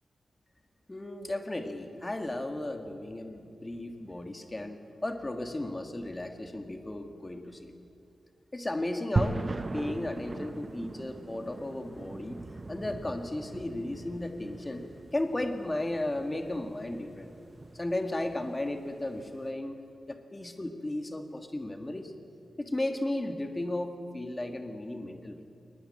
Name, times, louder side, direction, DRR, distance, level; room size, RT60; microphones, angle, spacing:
voice 1, 0.9-7.7 8.5-9.4 9.7-12.4 12.7-14.9 15.1-17.3 17.7-19.8 20.1-22.1 22.6-25.5, left 1 dB, 15° left, 6 dB, 1.8 m, -35 dB
sound 1, 9.2-19.4, right 3 dB, 30° right, 0.6 m, -39 dB
21.5 x 20.0 x 8.8 m, 2.5 s
wide cardioid pair, 160°, 0 cm